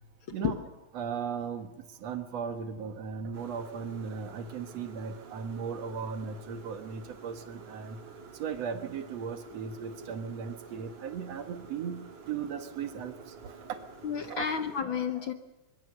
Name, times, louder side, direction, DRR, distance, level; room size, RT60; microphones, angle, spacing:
voice 1, 0.9-8.0 8.3-13.8 14.3-14.5, right 6 dB, 60° right, 9 dB, 2.6 m, -37 dB
sound 1, 3.3-14.8, right 5 dB, 80° right, 4.1 m, -50 dB
voice 2, 14.0-15.3, left 7 dB, 60° left, 9 dB, 1.4 m, -31 dB
24.0 x 22.5 x 6.7 m, 1.0 s
omnidirectional pair, 3.4 m